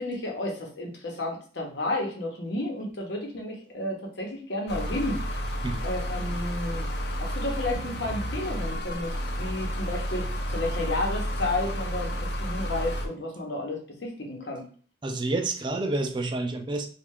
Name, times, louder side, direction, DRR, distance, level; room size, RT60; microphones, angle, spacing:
voice 1, 0.0-5.2 5.8-6.9 7.2-14.6, left 1 dB, 85° left, 0 dB, 0.9 m, -32 dB
sound 1, 4.7-13.1, equal, 65° left, 0.6 m, -31 dB
voice 2, 15.0-16.9, right 2 dB, 25° right, 5 dB, 0.4 m, -29 dB
3.1 x 2.4 x 3.5 m, 0.42 s
head